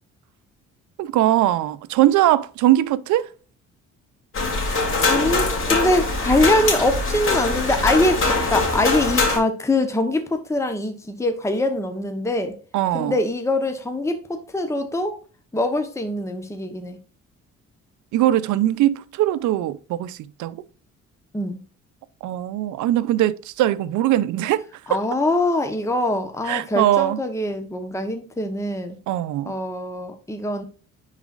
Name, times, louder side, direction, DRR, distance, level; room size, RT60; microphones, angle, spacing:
voice 1, 1.0-3.3 12.7-13.2 18.1-20.6 22.2-25.0 26.4-27.2 29.1-29.5, right 14 dB, 75° right, 0.6 m, -21 dB
sound 1, 4.3-9.4, left 3 dB, 45° left, 2.6 m, -22 dB
voice 2, 4.5-12.6 12.9-15.2 15.5-17.0 21.3-21.6 24.9-29.0 29.5-30.6, left 1 dB, 10° left, 1.0 m, -23 dB
9.8 x 4.1 x 2.5 m
supercardioid pair, 75°, 30 cm